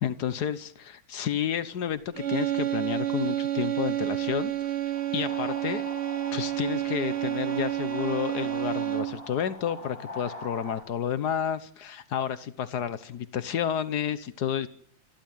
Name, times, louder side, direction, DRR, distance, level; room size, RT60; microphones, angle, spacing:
voice 1, 0.0-4.5 5.1-5.8 6.3-14.7, left 9 dB, 60° left, 14 dB, 1.5 m, -30 dB
sound 1, 2.1-9.3, right 13 dB, 45° right, 1.0 m, -29 dB
sound 2, 4.9-10.8, left 2 dB, 15° left, 4.2 m, -42 dB
27.5 x 12.0 x 9.0 m, 0.68 s
omnidirectional pair, 2.1 m